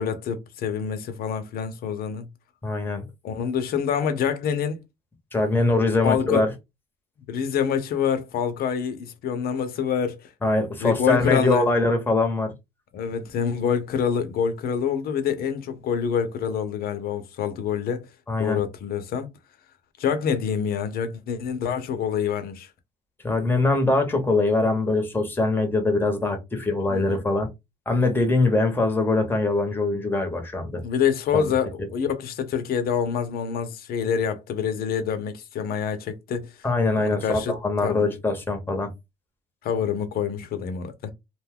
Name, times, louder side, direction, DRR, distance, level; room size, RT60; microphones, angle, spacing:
voice 1, 0.0-2.3 3.2-4.8 6.0-6.4 7.3-10.3 10.8-11.7 12.9-18.1 18.4-19.3 20.0-22.7 26.9-27.2 30.8-36.5 37.0-37.5 37.8-38.1 39.6-41.1, left 7 dB, 65° left, 0.7 m, -26 dB
voice 2, 2.6-3.0 5.3-6.5 10.4-12.5 18.3-18.6 23.2-27.5 27.9-30.8 31.3-31.5 36.6-38.9, left 2 dB, 10° left, 0.9 m, -23 dB
2.5 x 2.3 x 3.5 m
cardioid pair, 110°, 17 cm